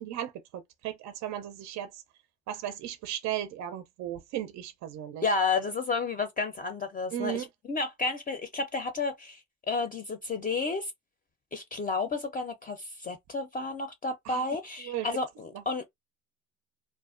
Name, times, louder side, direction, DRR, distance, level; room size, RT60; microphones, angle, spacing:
voice 1, 0.0-2.0 2.5-5.3 7.1-7.5 14.3-14.4 14.8-15.1 15.5-15.6, right 11 dB, 60° right, 0.5 m, -36 dB
voice 2, 5.2-9.4 9.7-10.9 11.5-15.9, left 3 dB, 25° left, 0.5 m, -31 dB
2.4 x 2.1 x 2.4 m
supercardioid pair, 85°, 32 cm